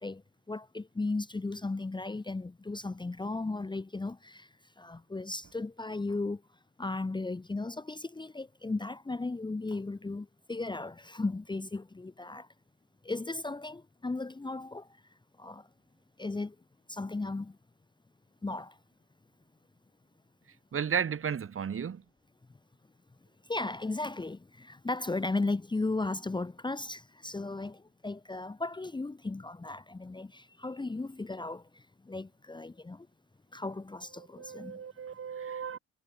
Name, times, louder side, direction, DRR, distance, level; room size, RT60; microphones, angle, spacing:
voice 1, 0.5-4.5 4.8-6.4 6.8-12.5 13.0-14.9 15.4-15.6 16.2-16.5 16.9-17.5 18.4-18.7 23.5-31.6 32.1-33.1 33.5-34.7, left 3 dB, 15° left, 1.0 m, -35 dB
voice 2, 20.7-22.0 34.4-35.8, right 7 dB, 45° right, 2.7 m, -34 dB
cardioid pair, 90°, 30 cm